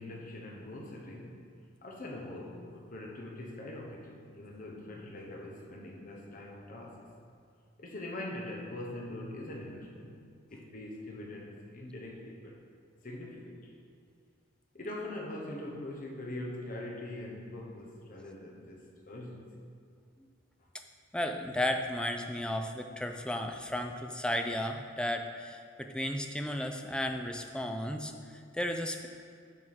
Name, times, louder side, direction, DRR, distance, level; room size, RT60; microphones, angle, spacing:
voice 1, 0.0-1.5 1.8-7.0 7.8-10.2 10.5-12.6 13.0-13.8 14.7-19.5, left 1 dB, 45° left, -1 dB, 1.1 m, -42 dB
voice 2, 21.1-28.1 28.5-29.1, left 1 dB, 5° left, 4 dB, 0.5 m, -34 dB
9.2 x 4.8 x 5.7 m, 2.2 s
head